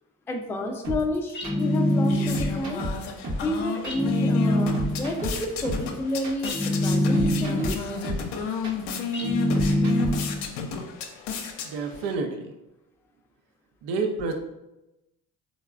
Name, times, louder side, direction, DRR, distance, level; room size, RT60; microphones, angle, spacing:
voice 1, 0.3-2.8 3.4-7.9, left 1 dB, 5° left, 2 dB, 0.3 m, -30 dB
sound 1, 0.8-10.4, right 1 dB, 40° right, 0.9 m, -33 dB
sound 2, 1.3-2.7 3.8-5.2 6.4-7.8 9.1-10.5, left 1 dB, 25° left, 0.7 m, -24 dB
sound 3, 1.6-12.1, left 4 dB, 65° left, 0.6 m, -32 dB
voice 2, 11.6-12.5 13.8-14.3, right 4 dB, 75° right, 4 dB, 0.6 m, -29 dB
3.7 x 2.0 x 2.3 m, 0.94 s
hypercardioid pair, 45°, 45 cm